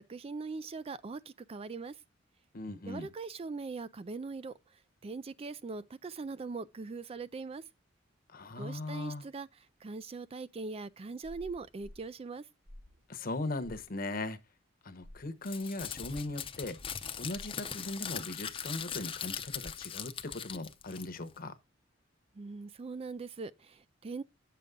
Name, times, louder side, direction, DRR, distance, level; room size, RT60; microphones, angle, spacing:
voice 1, 0.0-2.0 2.8-4.5 5.0-7.6 8.6-12.5 22.3-24.2, right 4 dB, 30° right, 0.4 m, -41 dB
voice 2, 2.5-3.1 8.3-9.2 13.1-14.4 14.8-16.8 17.2-21.6, left 2 dB, 50° left, 0.9 m, -39 dB
sound 1, 11.2-12.1 12.7-13.0 13.6-13.9 15.0-15.3 17.3-17.7, left 1 dB, 70° right, 4.5 m, -52 dB
Crumpling crinkling, 15.4-21.4, left 7 dB, 30° left, 0.6 m, -40 dB
8.7 x 6.8 x 3.7 m
head